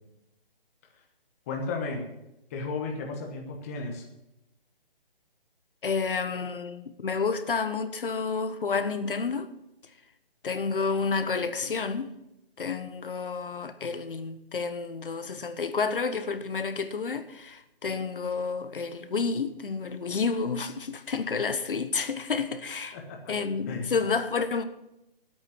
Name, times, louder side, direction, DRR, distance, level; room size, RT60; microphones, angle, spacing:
voice 1, 1.5-2.0 2.5-4.1 22.9-23.3 23.7-24.0, left 3 dB, 15° left, 1.2 m, -34 dB
voice 2, 5.8-9.5 10.4-12.1 12.6-23.0 23.3-24.6, left 5 dB, 65° left, 1.2 m, -30 dB
9.7 x 8.8 x 8.7 m
hypercardioid pair, 165°, 29 cm